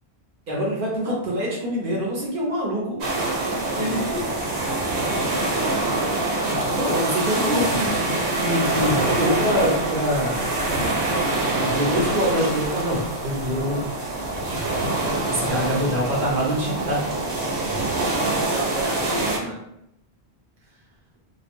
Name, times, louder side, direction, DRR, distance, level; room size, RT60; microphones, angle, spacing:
voice 1, 0.5-3.0 3.7-4.0 6.7-10.4 11.4-14.0 15.3-17.0, equal, 60° right, -4 dB, 0.8 m, -25 dB
sound 1, 3.0-19.4, right 2 dB, 90° right, 0.9 m, -25 dB
voice 2, 3.7-4.3 5.9-6.2 15.5-16.1 17.8-18.0 18.5-19.6, equal, ahead, -7 dB, 0.6 m, -33 dB
2.3 x 2.1 x 2.9 m, 0.81 s
omnidirectional pair, 1.1 m